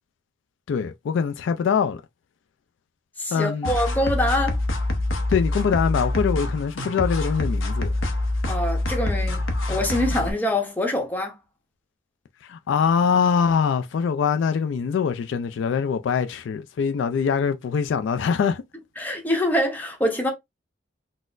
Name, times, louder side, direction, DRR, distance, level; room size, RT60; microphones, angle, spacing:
voice 1, 0.7-2.0 3.3-3.7 5.3-7.9 12.5-18.6, left 6 dB, 65° left, 0.3 m, -23 dB
voice 2, 3.2-4.6 8.5-9.4 9.7-11.4 19.0-20.3, left 1 dB, 10° left, 0.8 m, -24 dB
sound 1, 3.6-10.3, left 2 dB, 90° left, 0.7 m, -25 dB
4.1 x 2.0 x 2.4 m
head